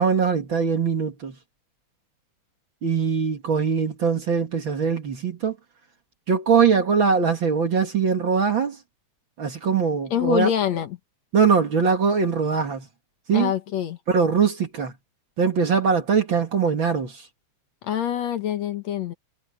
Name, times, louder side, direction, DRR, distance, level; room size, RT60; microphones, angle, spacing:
voice 1, 0.0-1.4 2.8-5.6 6.3-8.8 9.4-10.5 11.3-12.9 13.3-13.5 14.1-14.9 15.4-17.3, right 6 dB, 45° right, 2.3 m, -22 dB
voice 2, 10.1-11.0 13.3-14.0 17.8-19.1, left 9 dB, 65° left, 2.4 m, -25 dB
omnidirectional pair, 3.4 m